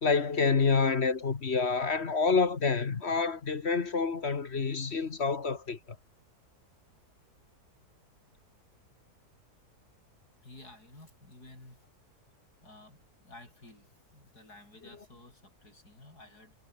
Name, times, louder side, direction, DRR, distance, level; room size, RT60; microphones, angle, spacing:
voice 1, 0.0-5.8, left 5 dB, 45° left, 1.5 m, -28 dB
voice 2, 10.4-11.8 12.6-16.6, left 2 dB, 75° left, 8.6 m, -53 dB
omnidirectional pair, 1.7 m